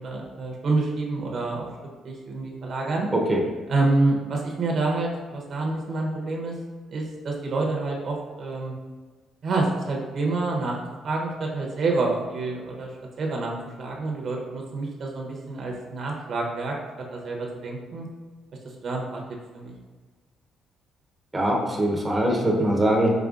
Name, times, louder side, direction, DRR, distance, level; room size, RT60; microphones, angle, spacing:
voice 1, 0.0-1.6 2.0-3.1 3.7-6.6 6.9-8.7 9.4-10.8 11.0-12.9 13.2-16.8 17.1-18.1 18.8-19.2 19.5-19.7, right 3 dB, 55° right, -1 dB, 0.7 m, -27 dB
voice 2, 21.3-23.1, right 1 dB, 15° right, -1 dB, 0.7 m, -22 dB
5.0 x 3.2 x 2.4 m, 1.4 s
cardioid pair, 110°, 0 cm